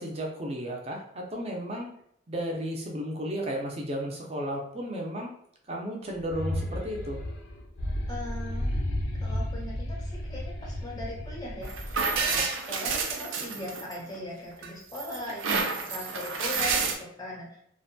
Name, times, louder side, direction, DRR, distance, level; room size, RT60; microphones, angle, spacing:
voice 1, 0.0-1.9 2.3-5.3 5.7-7.2, equal, 30° right, 0 dB, 0.5 m, -33 dB
sound 1, 6.2-12.5, left 1 dB, 70° left, 0.4 m, -33 dB
voice 2, 8.1-8.8 9.2-17.6, left 1 dB, 20° left, -3 dB, 0.5 m, -39 dB
sound 2, 11.6-14.2 14.6-16.9, right 4 dB, 85° right, 0.4 m, -29 dB
2.6 x 2.1 x 2.6 m, 0.71 s
head